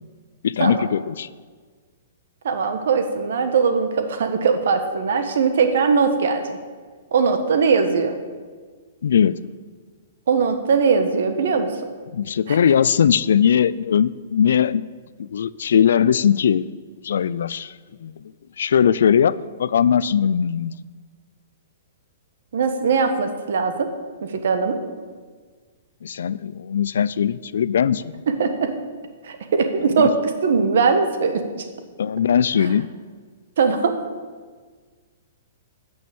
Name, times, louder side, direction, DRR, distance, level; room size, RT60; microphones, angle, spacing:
voice 1, 0.4-1.3 9.0-9.4 12.1-14.9 15.2-16.7 17.0-17.7 18.0-18.2 18.6-20.8 26.0-28.1 30.0-30.1 32.0-32.9, left 8 dB, 75° left, 18 dB, 0.3 m, -19 dB
voice 2, 2.4-6.6 7.1-8.1 10.3-11.7 12.5-12.6 22.5-23.9 24.2-24.8 28.3-28.7 29.2-30.1 30.4-31.4 32.6-32.7 33.6-34.0, right 5 dB, 70° right, 7 dB, 1.2 m, -20 dB
9.4 x 6.2 x 7.0 m, 1.5 s
hypercardioid pair, 150°, 0 cm